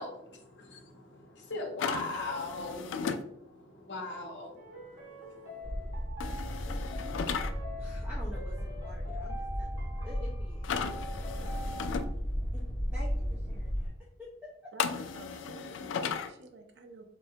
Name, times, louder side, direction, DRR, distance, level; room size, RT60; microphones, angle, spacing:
voice 1, 0.0-5.9, left 2 dB, 65° left, 2 dB, 0.7 m, -41 dB
sound 1, 1.8-3.2 6.2-7.5 10.6-12.0 14.8-16.3, left 6 dB, 85° left, 0.3 m, -35 dB
sound 2, 4.6-12.1, left 1 dB, 90° right, 1.0 m, -46 dB
sound 3, 5.6-13.9, equal, 25° left, 0.7 m, -35 dB
voice 2, 7.3-10.7 11.3-12.1 12.5-12.6 12.9-13.9 14.2-14.7, left 1 dB, 10° right, -8 dB, 0.6 m, -49 dB
voice 3, 15.1-17.1, right 3 dB, 60° right, 5 dB, 0.4 m, -51 dB
4.4 x 2.1 x 2.7 m, 0.75 s
head